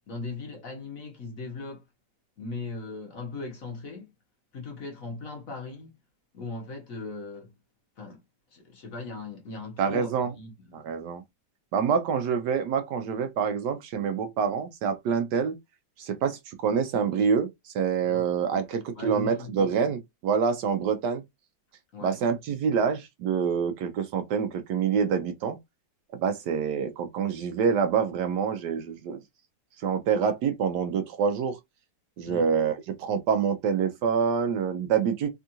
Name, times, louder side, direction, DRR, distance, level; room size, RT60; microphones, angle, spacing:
voice 1, 0.1-1.8 2.4-4.1 4.5-6.0 6.3-7.5 8.0-8.2 8.5-10.8 18.0-19.5 21.9-22.2 32.3-32.5, left 3 dB, 55° left, 1.1 m, -39 dB
voice 2, 9.8-10.3 10.7-11.2 11.7-15.6 16.0-21.2 22.0-25.6 26.2-29.2 29.8-31.6 32.2-35.3, right 6 dB, 70° right, 1.1 m, -26 dB
3.5 x 2.3 x 2.7 m
omnidirectional pair, 2.0 m